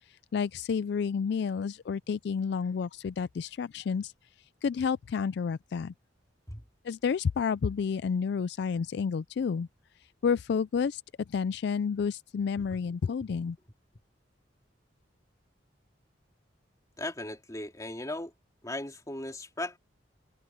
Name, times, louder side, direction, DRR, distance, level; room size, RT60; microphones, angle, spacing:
voice 1, 0.1-4.1 4.6-5.9 6.8-9.7 10.2-11.0 11.3-13.6, left 6 dB, 60° left, 0.3 m, -30 dB
voice 2, 17.0-18.3 18.6-19.8, left 1 dB, 20° left, 2.8 m, -37 dB
head